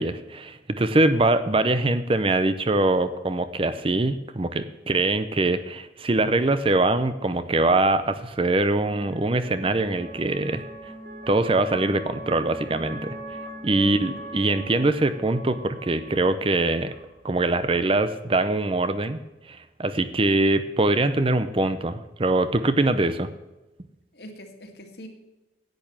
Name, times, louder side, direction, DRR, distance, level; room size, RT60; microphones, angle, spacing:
voice 1, 0.0-10.6 11.3-13.2 13.6-16.9 17.2-19.2 19.5-23.3, right 2 dB, 30° right, 12 dB, 0.6 m, -23 dB
sound 1, 8.0-17.7, right 1 dB, 55° right, 3.2 m, -41 dB
voice 2, 13.7-14.2 24.1-25.1, left 1 dB, 60° left, 4 dB, 2.1 m, -42 dB
10.5 x 8.8 x 7.2 m, 1.0 s
head